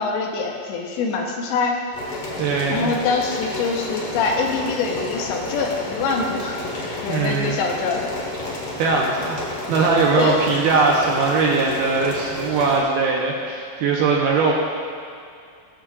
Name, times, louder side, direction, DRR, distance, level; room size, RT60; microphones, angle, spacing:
voice 1, 0.0-1.8 2.7-6.6 7.0-8.1 10.2-10.4, left 4 dB, 85° left, 1 dB, 3.2 m, -24 dB
sound 1, 1.9-12.8, left 2 dB, 50° left, 1.9 m, -31 dB
voice 2, 2.4-3.0 7.1-7.6 8.8-9.4 9.7-14.5, right 4 dB, 75° right, -1 dB, 2.5 m, -20 dB
20.0 x 8.9 x 2.5 m, 2.4 s
omnidirectional pair, 5.1 m